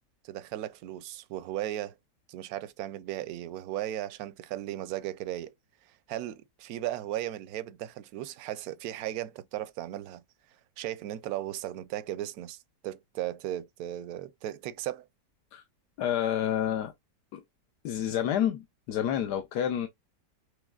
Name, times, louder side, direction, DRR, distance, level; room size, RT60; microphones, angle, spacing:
voice 1, 0.2-2.0 2.3-5.5 6.1-10.2 10.8-12.6 12.8-15.1, right 13 dB, 70° right, 0.9 m, -36 dB
voice 2, 16.0-16.9 17.3-17.4 17.8-19.9, left 10 dB, 70° left, 1.2 m, -29 dB
6.3 x 3.2 x 2.2 m
omnidirectional pair, 1.9 m